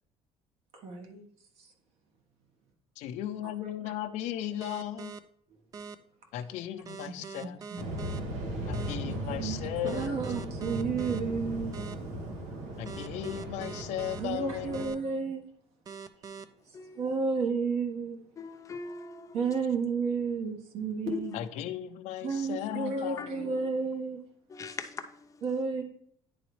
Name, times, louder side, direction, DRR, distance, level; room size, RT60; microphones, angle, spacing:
voice 1, 0.8-1.3 7.7-7.8 9.1-9.6 9.8-11.8 14.2-15.4 17.0-18.3 19.3-21.3 22.2-24.2 25.4-25.8, right 5 dB, 60° right, 1.4 m, -31 dB
voice 2, 3.0-5.1 6.3-7.6 8.7-10.7 12.8-15.0 21.3-23.6, left 12 dB, 75° left, 0.6 m, -37 dB
sound 1, 4.6-5.2 5.7-5.9 6.8-8.2 8.7-8.9 9.8-11.2 11.7-11.9 12.8-14.2 14.7-14.9 15.8-16.4, right 5 dB, 30° right, 0.4 m, -42 dB
Waves surf, 7.8-14.9, right 1 dB, 80° right, 1.5 m, -37 dB
voice 3, 18.4-19.4 21.1-21.3 23.2-23.6 24.5-25.4, left 5 dB, 25° left, 0.6 m, -40 dB
10.0 x 4.0 x 3.1 m
cardioid pair, 130°, 12 cm